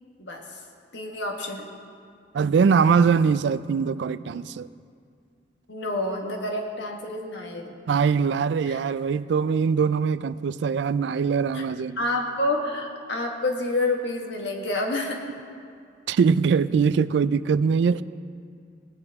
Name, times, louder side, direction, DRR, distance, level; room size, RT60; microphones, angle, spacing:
voice 1, 0.9-1.7 5.7-7.8 8.7-8.8 11.5-11.6 12.0-15.2, left 2 dB, 70° left, 1 dB, 1.5 m, -28 dB
voice 2, 2.3-4.7 7.9-12.0 16.1-18.0, right 6 dB, 65° right, 16 dB, 0.3 m, -22 dB
17.5 x 9.8 x 3.6 m, 2.2 s
head